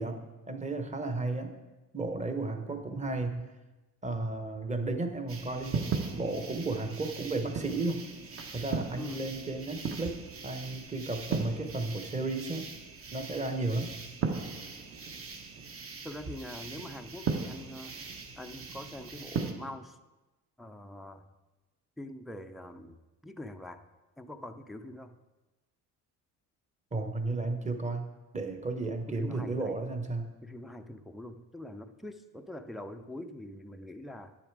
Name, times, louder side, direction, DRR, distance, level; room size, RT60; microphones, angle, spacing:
voice 1, 0.0-1.5 1.9-3.4 4.0-8.0 8.5-12.7 13.1-13.9 26.9-28.1 28.3-30.3, right 2 dB, 20° right, 7 dB, 1.1 m, -33 dB
sound 1, 5.3-19.5, right 5 dB, 40° right, 1.2 m, -38 dB
voice 2, 16.0-18.0 18.3-20.0 20.6-21.3 22.0-23.9 24.2-25.2 29.1-29.8 30.4-34.3, left 1 dB, ahead, 6 dB, 0.5 m, -44 dB
9.7 x 7.2 x 4.7 m, 1.1 s
cardioid pair, 95°, 34 cm